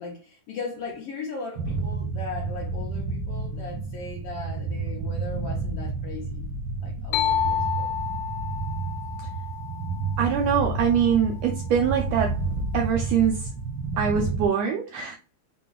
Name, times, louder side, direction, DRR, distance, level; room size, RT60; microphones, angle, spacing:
voice 1, 0.0-7.9, left 3 dB, 70° left, 1.5 m, -38 dB
sound 1, 1.6-14.5, right 3 dB, 65° right, 1.3 m, -30 dB
sound 2, 7.1-10.8, left 9 dB, 85° left, 2.2 m, -29 dB
voice 2, 10.2-12.4 12.7-13.5 14.0-15.2, right 7 dB, 85° right, 1.5 m, -23 dB
4.9 x 2.3 x 3.9 m
omnidirectional pair, 3.5 m